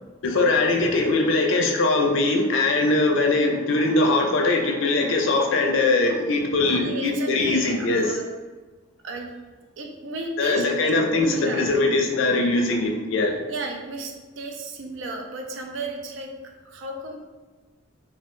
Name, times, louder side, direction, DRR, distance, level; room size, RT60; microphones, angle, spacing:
voice 1, 0.2-8.2 10.4-13.4, left 2 dB, 70° left, 2 dB, 0.4 m, -21 dB
voice 2, 6.6-8.3 9.0-9.3 9.8-11.7 13.5-16.3 16.6-17.2, right 2 dB, 65° right, 2 dB, 0.4 m, -34 dB
2.3 x 2.2 x 2.9 m, 1.3 s
head